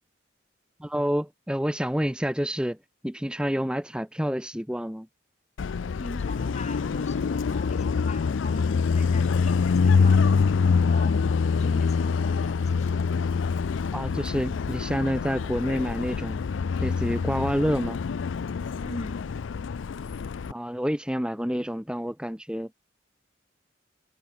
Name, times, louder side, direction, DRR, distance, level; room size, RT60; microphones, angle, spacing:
voice 1, 0.8-2.8 3.0-5.1 13.9-16.4 16.8-18.0 20.5-22.7, equal, 5° right, 1.5 m, -28 dB
Car passing by, 5.6-20.5, left 5 dB, 80° left, 0.4 m, -25 dB
voice 2, 6.0-10.2 10.7-11.3 11.6-13.1 18.8-19.3, left 1 dB, 35° left, 6.9 m, -41 dB
head